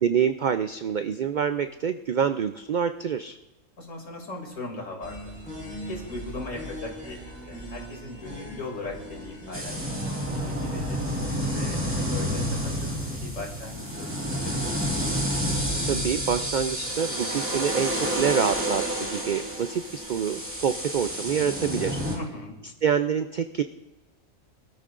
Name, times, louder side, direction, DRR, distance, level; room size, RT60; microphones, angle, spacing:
voice 1, 0.0-3.4 15.8-22.0 22.8-23.6, right 7 dB, 75° right, 9 dB, 0.4 m, -26 dB
voice 2, 3.8-5.3 5.9-7.2 7.5-11.0 11.5-12.7 13.1-15.2 22.1-22.5, left 2 dB, 75° left, 0 dB, 3.0 m, -39 dB
sound 1, 5.0-10.3, equal, 5° left, 4.0 m, -40 dB
sound 2, 9.5-22.2, equal, 10° right, 2.1 m, -29 dB
24.0 x 13.0 x 2.5 m, 1.0 s
omnidirectional pair, 1.4 m